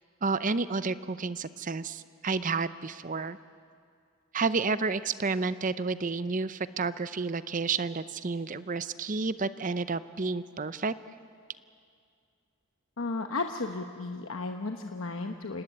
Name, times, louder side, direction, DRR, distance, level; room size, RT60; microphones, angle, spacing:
voice 1, 0.2-3.4 4.3-10.9, right 4 dB, 40° right, 14 dB, 0.6 m, -30 dB
voice 2, 13.0-15.6, left 3 dB, 70° left, 4 dB, 1.0 m, -34 dB
28.0 x 19.0 x 8.7 m, 2.3 s
head